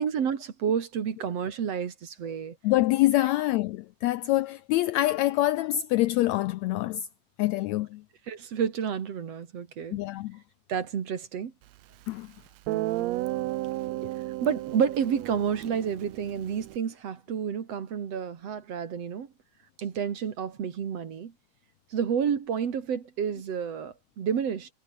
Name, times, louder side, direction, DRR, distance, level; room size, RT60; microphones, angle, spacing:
voice 1, 0.0-2.5 3.2-3.3 8.3-10.0 10.7-11.5 13.9-14.2 14.4-19.3 19.8-21.3 21.9-24.7, right 7 dB, 55° right, 2.9 m, -30 dB
voice 2, 2.6-7.1 7.4-8.0 9.9-10.4 12.1-12.3, left 16 dB, 85° left, 1.6 m, -25 dB
Guitar, 12.1-12.2 12.7-16.8, right 17 dB, 75° right, 1.6 m, -33 dB
omnidirectional pair, 3.7 m